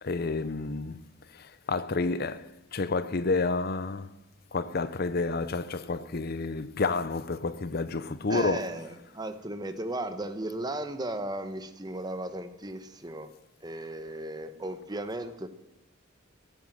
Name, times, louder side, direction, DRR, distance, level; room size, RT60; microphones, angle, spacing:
voice 1, 0.0-1.1 1.3-4.1 4.5-8.7, left 3 dB, 45° left, 0.6 m, -30 dB
voice 2, 8.3-13.3 13.6-15.5, right 1 dB, 20° right, 1.0 m, -36 dB
16.5 x 9.0 x 7.6 m
head